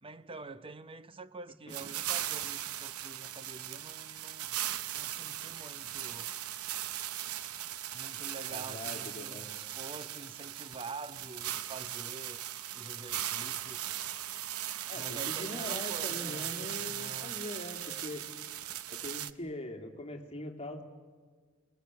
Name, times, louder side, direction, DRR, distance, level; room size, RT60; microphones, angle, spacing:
voice 1, 0.0-4.5 4.9-6.3 7.9-12.4 12.7-13.9 14.9-17.4, right 3 dB, 25° right, 0.7 m, -47 dB
sound 1, 1.7-19.3, right 12 dB, 90° right, 0.8 m, -38 dB
voice 2, 8.5-9.5 12.9-13.0 14.9-18.2 18.9-20.8, left 1 dB, 25° left, 2.4 m, -42 dB
27.0 x 20.5 x 8.1 m
head